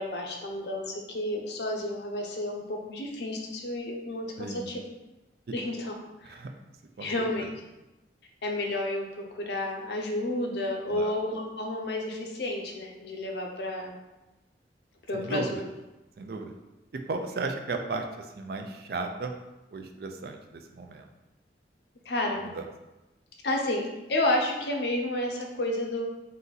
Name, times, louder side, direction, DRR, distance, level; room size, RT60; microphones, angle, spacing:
voice 1, 0.0-4.8 5.5-5.9 6.2-6.4 7.0-7.5 8.4-14.0 15.1-15.7 22.1-22.5 23.4-26.1, left 1 dB, 70° left, 1 dB, 0.7 m, -31 dB
voice 2, 4.4-4.7 6.2-6.5 7.0-7.5 10.9-11.1 15.1-15.6 16.2-16.5 17.1-19.3 19.7-21.1 22.4-22.7, right 3 dB, 60° right, 5 dB, 0.4 m, -35 dB
3.9 x 2.6 x 3.9 m, 1.0 s
head